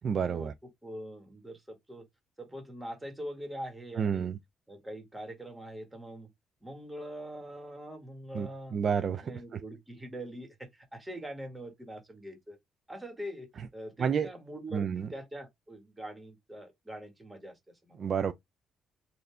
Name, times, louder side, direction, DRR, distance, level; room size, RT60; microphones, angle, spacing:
voice 1, 0.0-0.5 4.0-4.4 8.3-9.6 14.0-14.3 14.7-15.1 18.0-18.3, right 7 dB, 50° right, 0.4 m, -30 dB
voice 2, 0.8-2.0 2.4-4.3 4.7-6.3 6.6-8.8 9.2-12.6 12.9-18.1, right 1 dB, 10° right, 1.7 m, -43 dB
4.1 x 2.7 x 3.3 m
cardioid pair, 90°, 0 cm